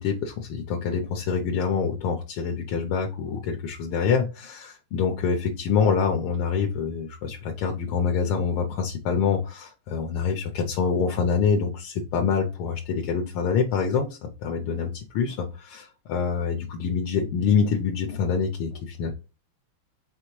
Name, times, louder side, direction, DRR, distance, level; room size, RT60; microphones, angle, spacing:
voice 1, 0.0-19.1, left 6 dB, 80° left, 3 dB, 1.5 m, -26 dB
4.4 x 3.4 x 3.1 m, 0.30 s
omnidirectional pair, 2.3 m